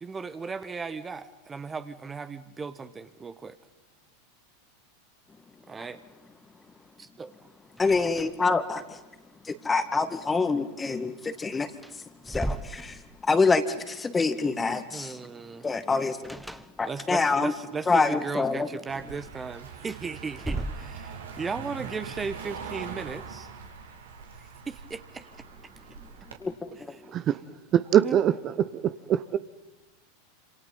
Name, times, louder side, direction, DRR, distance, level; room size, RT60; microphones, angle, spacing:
voice 1, 0.0-3.6 5.7-6.0 7.0-7.3 14.9-15.7 16.8-23.5 24.4-25.2 28.0-28.2, right 5 dB, 20° right, 1.2 m, -36 dB
voice 2, 7.8-9.0 9.5-11.7 12.2-13.0 13.2-15.2 15.6-16.4 16.8-17.5 17.9-18.7 26.4-26.5, left 4 dB, 15° left, 2.0 m, -26 dB
sound 1, 7.8-8.6 8.9-9.0 11.2-11.3 11.7-13.5 16.2-17.2 19.7-21.4, right 1 dB, ahead, 1.0 m, -37 dB
Car passing by, 18.9-26.4, right 6 dB, 75° right, 3.2 m, -42 dB
voice 3, 27.7-28.3 29.1-29.4, right 10 dB, 35° right, 0.8 m, -21 dB
27.5 x 26.5 x 5.6 m
hypercardioid pair, 90°, 0 cm